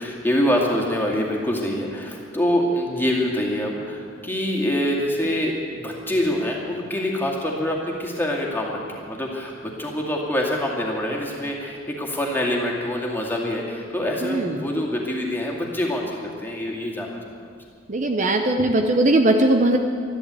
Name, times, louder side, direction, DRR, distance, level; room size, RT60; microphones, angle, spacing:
voice 1, 0.0-17.2, left 1 dB, 10° left, -2 dB, 2.2 m, -25 dB
voice 2, 14.2-14.7 17.9-19.8, right 1 dB, 35° right, 4 dB, 0.8 m, -19 dB
13.0 x 11.5 x 8.3 m, 2.2 s
head